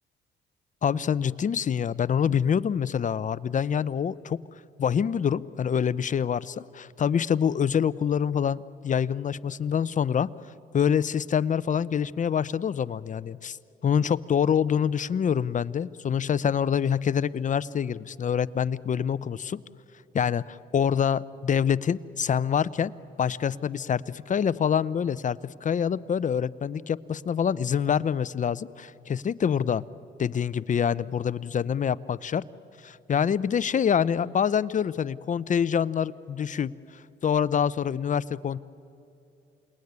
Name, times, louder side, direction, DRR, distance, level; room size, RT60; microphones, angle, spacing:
voice 1, 0.8-4.4 4.8-10.3 10.7-13.6 13.8-19.6 20.1-22.9 23.2-29.8 30.2-32.4 32.8-38.6, left 8 dB, 40° left, 18 dB, 0.6 m, -26 dB
28.0 x 19.5 x 9.6 m, 2.9 s
cardioid pair, 90°, 20 cm